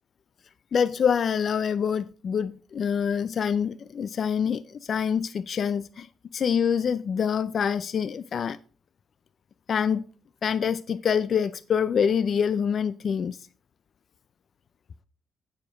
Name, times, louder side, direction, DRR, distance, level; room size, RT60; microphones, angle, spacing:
voice 1, 0.7-6.1 6.3-8.6 9.7-10.0 10.4-13.4, left 7 dB, 50° left, 0.4 m, -26 dB
9.2 x 5.2 x 4.9 m
cardioid pair, 90°, 0 cm